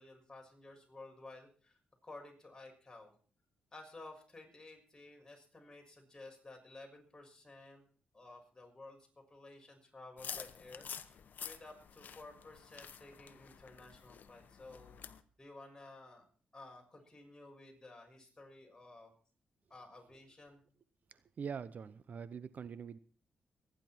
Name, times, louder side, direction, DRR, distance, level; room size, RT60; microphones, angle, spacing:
voice 1, 0.0-3.1 3.7-7.8 8.1-15.0 15.4-16.2 16.5-19.1 19.7-20.6, left 2 dB, 20° left, 1 dB, 6.4 m, -54 dB
sound 1, 10.2-15.2, left 7 dB, 65° left, 1.0 m, -49 dB
voice 2, 21.1-23.0, right 6 dB, 55° right, 16 dB, 0.8 m, -44 dB
24.0 x 10.5 x 4.5 m, 0.42 s
cardioid pair, 65°, 3 cm